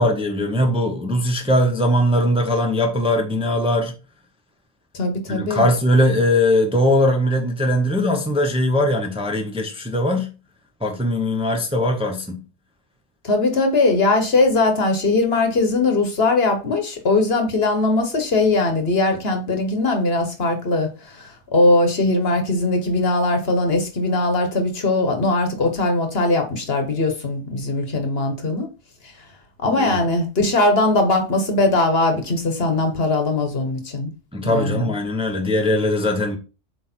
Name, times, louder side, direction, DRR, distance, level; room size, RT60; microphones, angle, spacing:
voice 1, 0.0-3.9 5.3-10.3 10.8-12.4 29.7-30.0 34.3-36.4, left 1 dB, 5° right, 0.8 m, -20 dB
voice 2, 4.9-5.7 13.2-28.7 29.6-34.1 34.4-34.9, left 2 dB, 55° left, 1.4 m, -20 dB
7.7 x 3.3 x 4.4 m
omnidirectional pair, 1.3 m